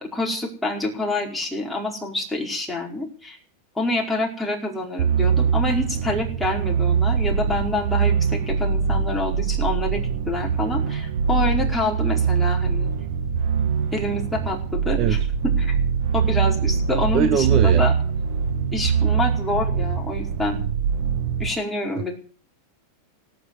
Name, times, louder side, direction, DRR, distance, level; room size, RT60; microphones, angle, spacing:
voice 1, 0.0-3.4 3.7-12.9 13.9-15.2 15.4-15.8 16.1-17.9 18.7-20.6 21.4-22.2, left 2 dB, 5° left, -1 dB, 4.8 m, -27 dB
sound 1, 5.0-21.5, right 6 dB, 75° right, 1.6 m, -23 dB
voice 2, 14.9-15.3 17.1-17.9, right 8 dB, 35° right, 10 dB, 1.2 m, -21 dB
17.5 x 9.5 x 8.1 m, 0.40 s
supercardioid pair, 155°, 0 cm